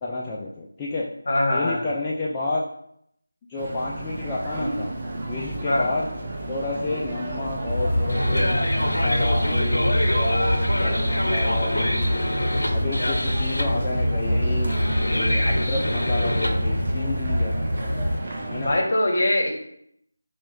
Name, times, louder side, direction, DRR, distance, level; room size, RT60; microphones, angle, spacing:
voice 1, 0.0-1.1 1.5-2.6 3.5-4.9 5.3-6.1 6.5-12.2 12.7-14.7 15.1-17.5 18.5-18.7, left 2 dB, 15° left, -6 dB, 0.3 m, -30 dB
voice 2, 1.3-1.9 5.7-5.9 18.6-19.5, left 1 dB, 50° left, 1 dB, 0.9 m, -22 dB
sound 1, 3.6-18.8, right 1 dB, 40° right, 0.7 m, -32 dB
sound 2, 7.7-18.2, equal, 75° left, 0.6 m, -23 dB
3.0 x 2.3 x 4.2 m, 0.72 s
figure-of-eight pair, 165°, 0 cm